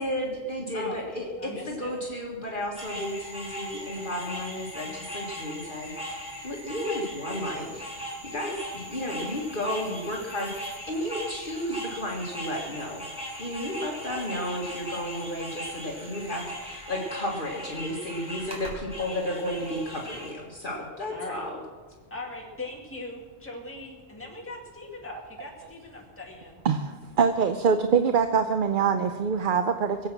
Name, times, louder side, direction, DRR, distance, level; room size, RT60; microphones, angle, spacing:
voice 1, 0.0-13.1 13.4-21.6, left 1 dB, 45° left, -2 dB, 2.0 m, -33 dB
voice 2, 1.4-1.9 21.1-21.4 22.1-26.6, left 2 dB, 10° left, -1 dB, 2.1 m, -40 dB
sound 1, 2.8-20.3, equal, 5° right, 4.0 m, -39 dB
voice 3, 27.2-30.1, right 6 dB, 55° right, 8 dB, 0.8 m, -23 dB
22.0 x 8.2 x 6.1 m, 1.4 s
omnidirectional pair, 1.2 m